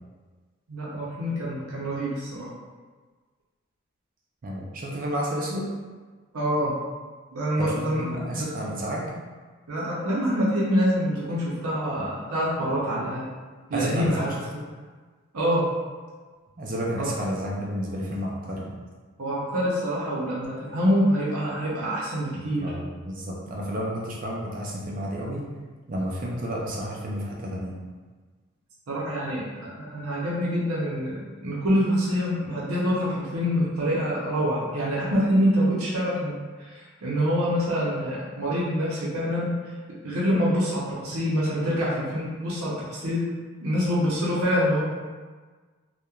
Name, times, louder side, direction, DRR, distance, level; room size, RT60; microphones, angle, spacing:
voice 1, 0.7-2.5 6.3-6.7 7.3-8.1 8.3-8.5 9.7-13.3 13.7-14.3 15.3-15.7 17.0-17.1 19.2-22.7 28.9-39.6 40.0-43.3 43.6-44.8, equal, 85° right, -6 dB, 0.6 m, -26 dB
voice 2, 4.4-5.7 7.6-9.1 13.7-14.3 14.5-14.6 16.6-18.7 22.6-25.4 25.9-27.8, equal, 40° right, -3 dB, 0.4 m, -31 dB
2.9 x 2.1 x 2.3 m, 1.4 s
head